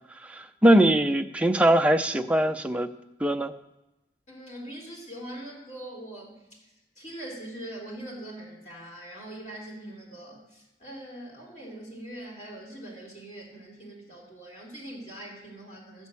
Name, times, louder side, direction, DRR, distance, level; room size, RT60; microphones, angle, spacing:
voice 1, 0.3-2.9 3.2-3.5, right 1 dB, 5° right, 5 dB, 0.5 m, -21 dB
voice 2, 4.3-6.4 7.0-16.1, right 1 dB, 40° left, -3 dB, 3.5 m, -42 dB
13.5 x 5.4 x 8.3 m, 0.96 s
head